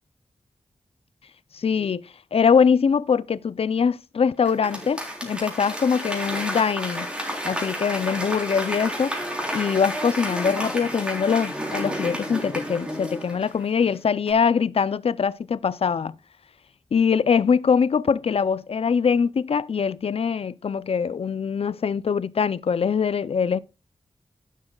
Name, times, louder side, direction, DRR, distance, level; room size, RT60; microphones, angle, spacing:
voice 1, 1.5-2.0 2.3-7.1 7.4-9.1 9.5-16.1 16.9-23.6, left 6 dB, 65° left, 0.4 m, -23 dB
Applause / Crowd, 4.5-13.9 14.3-14.4, equal, 10° right, 3.6 m, -31 dB
11.5 x 11.0 x 2.3 m
wide cardioid pair, 120°, 11 cm